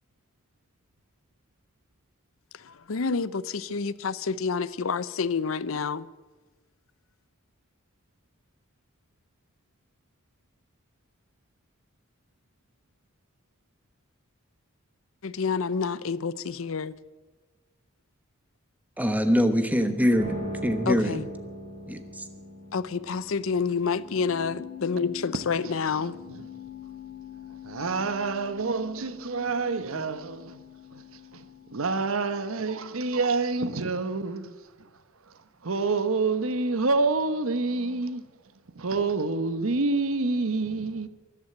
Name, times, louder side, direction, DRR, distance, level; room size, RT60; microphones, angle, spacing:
voice 1, 2.5-6.1 15.2-17.0 20.9-21.3 22.7-26.2 29.9-30.1, left 5 dB, 75° left, 0.6 m, -28 dB
voice 2, 19.0-21.2 21.9-22.2, equal, 10° right, 1.1 m, -24 dB
sound 1, 20.1-32.5, left 3 dB, 30° right, 7.3 m, -42 dB
voice 3, 27.5-30.6 30.9-34.5 35.3-38.2 38.7-41.1, right 3 dB, 80° right, 1.0 m, -28 dB
13.5 x 11.5 x 8.9 m
head